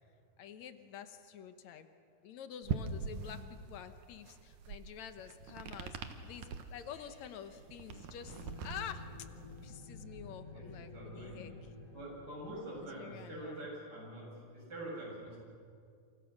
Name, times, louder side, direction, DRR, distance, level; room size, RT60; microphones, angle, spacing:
voice 1, 0.4-1.9 2.2-6.0 6.2-9.1 9.6-11.5 12.8-13.6, left 8 dB, 70° left, 9 dB, 2.4 m, -48 dB
sound 1, 2.6-9.8, right 6 dB, 85° right, 2.9 m, -43 dB
voice 2, 3.1-3.5 10.5-11.6 11.9-15.4, right 1 dB, 30° right, -3 dB, 8.3 m, -46 dB
sound 2, 8.2-13.4, left 3 dB, 50° left, 9.1 m, -51 dB
28.5 x 28.0 x 6.6 m, 2.3 s
omnidirectional pair, 3.4 m